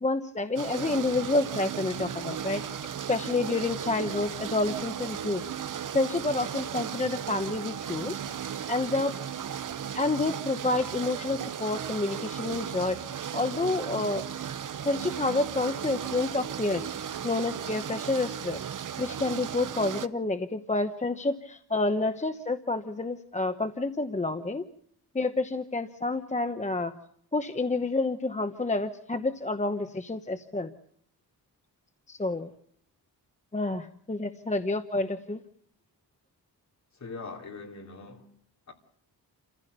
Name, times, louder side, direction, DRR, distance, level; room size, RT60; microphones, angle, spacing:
voice 1, 0.0-2.6 3.1-5.4 5.9-8.1 8.7-9.1 9.9-13.0 13.3-14.2 14.8-16.9 17.2-18.6 19.0-24.6 25.1-26.9 27.3-30.7 32.1-32.5 33.5-35.4, left 2 dB, 20° left, 0.9 m, -29 dB
sound 1, 0.6-20.1, right 9 dB, 55° right, 0.9 m, -36 dB
voice 2, 37.0-38.2 38.7-38.8, left 4 dB, 45° left, 3.2 m, -41 dB
29.5 x 15.5 x 6.7 m
wide cardioid pair, 125°, 38 cm